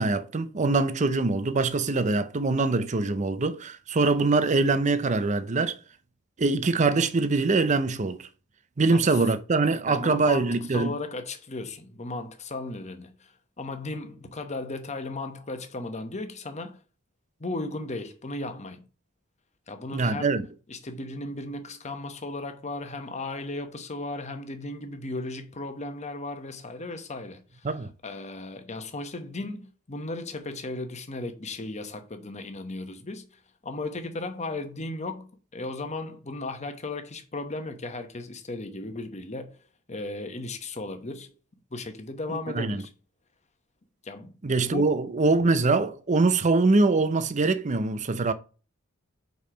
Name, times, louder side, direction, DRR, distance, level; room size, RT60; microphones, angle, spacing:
voice 1, 0.0-5.8 6.4-8.3 8.8-10.9 19.9-20.5 27.6-27.9 42.3-42.8 44.4-48.3, right 3 dB, 35° right, 0.6 m, -23 dB
voice 2, 9.9-16.8 17.4-18.8 19.7-20.3 20.7-27.7 28.0-39.6 39.9-41.3 41.7-42.9 44.0-44.4 44.7-44.8, left 2 dB, 35° left, 1.0 m, -36 dB
5.3 x 4.7 x 5.0 m
head